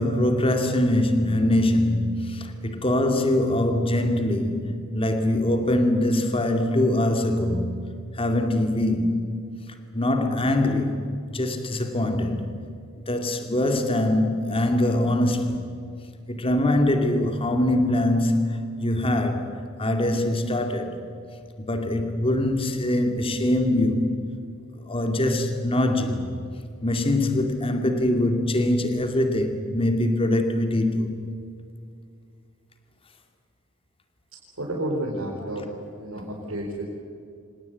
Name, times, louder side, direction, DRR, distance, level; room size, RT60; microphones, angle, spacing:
voice 1, 0.0-7.7 8.1-9.3 9.9-11.0 11.3-12.5 13.1-15.7 16.3-21.0 21.7-24.1 24.8-26.3 26.8-31.2, left 1 dB, 25° left, 2.3 m, -23 dB
voice 2, 34.6-35.7 36.0-36.8, right 1 dB, 90° right, 5.1 m, -30 dB
26.5 x 19.5 x 8.3 m
head